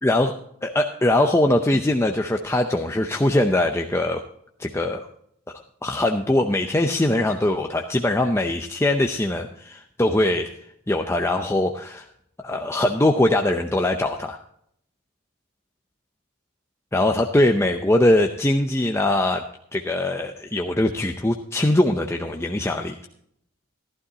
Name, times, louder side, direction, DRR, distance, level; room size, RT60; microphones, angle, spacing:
voice 1, 0.0-0.3 0.6-4.2 4.6-5.1 5.8-10.5 10.9-12.0 12.4-14.4 16.9-19.4 19.7-23.0, left 1 dB, 10° left, 3 dB, 0.6 m, -21 dB
14.5 x 12.5 x 2.8 m, 0.71 s
head